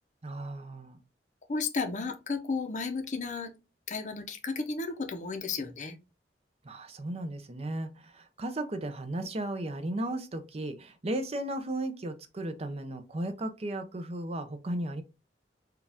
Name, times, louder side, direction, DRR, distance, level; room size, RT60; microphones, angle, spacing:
voice 1, 0.2-1.0 6.6-15.0, right 1 dB, 35° right, 0.5 m, -35 dB
voice 2, 1.5-3.5 3.9-6.0, left 4 dB, 45° left, 0.6 m, -33 dB
4.7 x 2.4 x 3.4 m
head